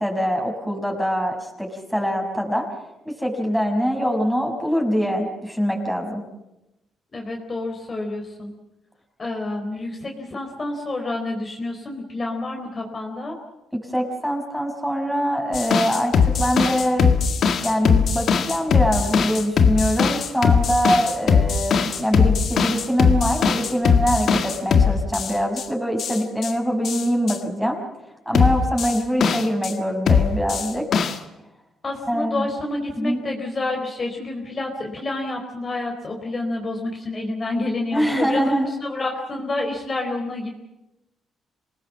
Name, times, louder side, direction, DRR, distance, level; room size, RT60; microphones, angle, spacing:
voice 1, 0.0-2.7 3.0-6.2 13.7-17.2 17.6-27.8 28.3-30.9 32.1-32.4 33.0-33.2 37.9-38.7, equal, ahead, 1 dB, 6.2 m, -23 dB
voice 2, 7.1-8.5 9.2-13.4 31.8-38.5 38.8-40.5, left 2 dB, 35° left, 1 dB, 4.1 m, -28 dB
sound 1, 15.5-25.6 26.0-26.5 26.8-27.4 28.3-29.7 30.1-31.1, left 6 dB, 60° left, 1.8 m, -20 dB
27.5 x 19.0 x 7.4 m, 0.92 s
cardioid pair, 90°, 0 cm